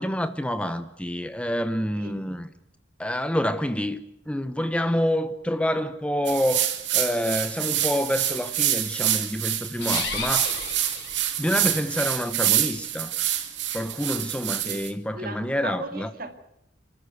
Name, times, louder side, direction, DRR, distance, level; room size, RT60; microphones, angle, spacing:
voice 1, 0.0-2.5 3.0-10.6 11.4-13.1 13.7-16.1, equal, 5° left, 0.8 m, -27 dB
sound 1, 6.3-14.9, right 12 dB, 90° right, 2.5 m, -27 dB
sound 2, 9.7-11.7, left 4 dB, 90° left, 8.0 m, -33 dB
voice 2, 15.1-16.3, right 3 dB, 55° right, 2.3 m, -37 dB
29.5 x 13.5 x 8.1 m
head